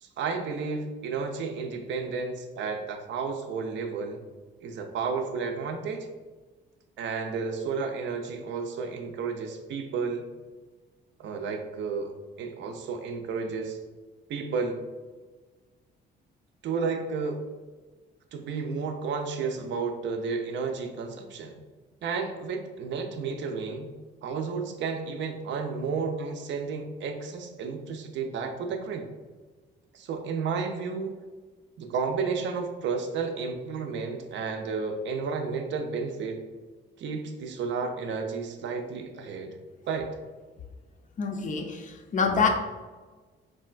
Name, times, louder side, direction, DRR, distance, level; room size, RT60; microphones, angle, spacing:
voice 1, 0.0-4.2 4.6-6.1 7.0-10.3 11.2-12.1 12.4-13.8 14.3-14.8 16.6-17.4 18.3-21.6 22.0-23.9 24.2-29.1 29.9-31.1 31.8-36.5 37.0-39.6 39.9-40.2, right 5 dB, 65° right, 5 dB, 0.5 m, -32 dB
voice 2, 41.2-42.5, left 5 dB, 40° left, 4 dB, 0.5 m, -26 dB
3.7 x 2.2 x 2.4 m, 1.3 s
cardioid pair, 90°, 20 cm